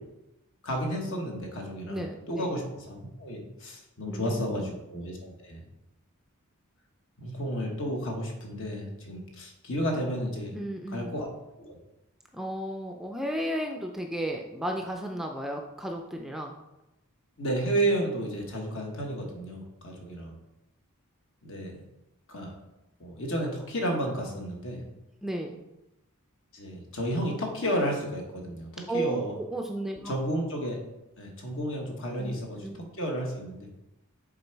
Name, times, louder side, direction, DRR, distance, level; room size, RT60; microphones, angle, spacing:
voice 1, 0.6-5.6 7.2-10.6 10.9-11.3 11.6-11.8 17.4-20.3 21.4-21.8 22.3-22.5 23.0-24.9 26.5-29.3 30.0-30.8 31.2-32.7 33.0-33.7, right 1 dB, 60° left, 1 dB, 1.4 m, -32 dB
voice 2, 1.9-2.6 4.1-4.7 10.5-11.1 12.3-16.6 25.2-25.6 28.9-30.1 32.2-32.9, right 1 dB, ahead, 2 dB, 0.4 m, -34 dB
7.0 x 3.8 x 4.5 m, 0.93 s
head